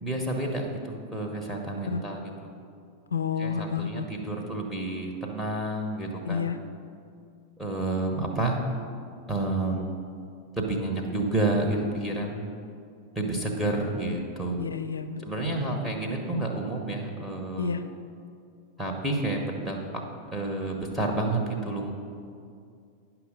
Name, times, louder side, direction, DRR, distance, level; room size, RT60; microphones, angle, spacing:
voice 1, 0.0-2.2 3.4-6.5 7.6-8.6 9.3-9.9 10.6-12.5 13.1-14.6 15.2-17.7 18.8-20.0 20.3-21.9, right 2 dB, ahead, -2 dB, 1.1 m, -30 dB
voice 2, 3.1-4.1 6.2-6.6 14.6-15.8 17.6-17.8, left 6 dB, 75° left, 10 dB, 0.5 m, -30 dB
10.0 x 5.9 x 5.4 m, 2.3 s
figure-of-eight pair, 90°, 0 cm